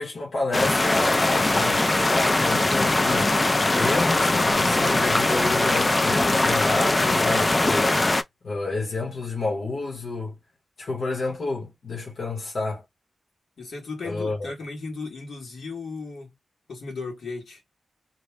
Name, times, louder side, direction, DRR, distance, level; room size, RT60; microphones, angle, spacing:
voice 1, 0.0-8.0 8.4-10.3 10.8-12.8 14.0-14.5, left 3 dB, 65° left, 1.1 m, -29 dB
sound 1, 0.5-8.2, left 2 dB, 25° left, 0.3 m, -21 dB
voice 2, 13.6-16.3 16.7-17.6, left 4 dB, 80° left, 1.4 m, -35 dB
2.7 x 2.2 x 3.2 m
wide cardioid pair, 135°, 0 cm